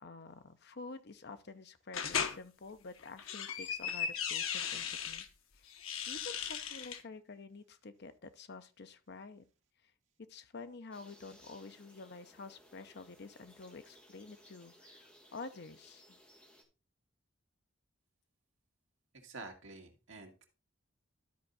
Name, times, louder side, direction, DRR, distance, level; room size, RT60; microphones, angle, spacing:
voice 1, 0.0-5.2 5.6-5.8 6.1-9.4 10.3-16.2, left 3 dB, 55° left, 0.7 m, -49 dB
sound 1, 1.9-2.4 3.0-5.3 5.7-7.0, left 7 dB, 85° left, 0.9 m, -37 dB
sound 2, 10.9-16.6, equal, 5° left, 1.6 m, -61 dB
voice 2, 19.2-20.4, right 3 dB, 65° right, 1.9 m, -49 dB
12.5 x 4.5 x 4.0 m
head